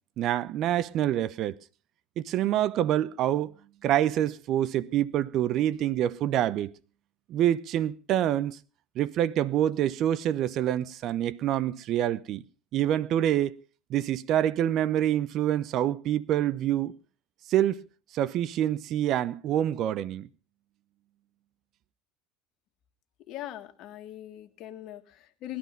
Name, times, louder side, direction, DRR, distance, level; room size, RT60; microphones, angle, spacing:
voice 1, 0.2-1.6 2.2-3.5 3.8-6.7 7.3-8.6 9.0-12.4 12.7-13.6 13.9-17.0 17.5-17.9 18.1-20.3, right 11 dB, 55° right, 0.7 m, -26 dB
voice 2, 23.3-25.6, left 13 dB, 55° left, 1.8 m, -41 dB
19.5 x 11.5 x 5.1 m
hypercardioid pair, 80°, 0 cm